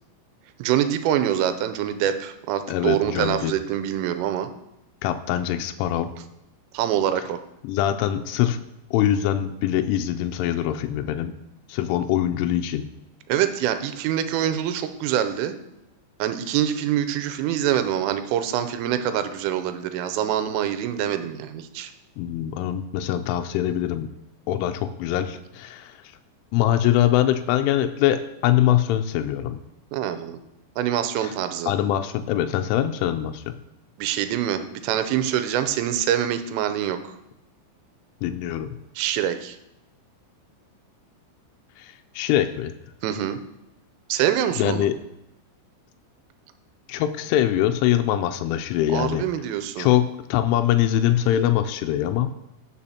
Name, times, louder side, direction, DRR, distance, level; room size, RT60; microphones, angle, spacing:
voice 1, 0.6-4.5 6.7-7.4 13.3-15.6 16.2-21.9 29.9-30.4 30.8-31.7 34.0-37.2 39.0-39.6 43.0-43.4 44.1-44.9 48.9-49.9, right 10 dB, 90° right, 10 dB, 3.2 m, -25 dB
voice 2, 2.7-3.5 5.0-6.1 7.6-8.6 8.9-11.3 11.7-12.9 22.2-24.1 24.5-26.1 26.5-29.6 31.2-31.3 31.7-33.6 38.2-38.7 41.8-42.7 44.6-44.9 46.9-49.2 49.8-52.3, left 12 dB, 85° left, 6 dB, 3.0 m, -23 dB
17.5 x 6.8 x 2.8 m, 0.88 s
omnidirectional pair, 5.7 m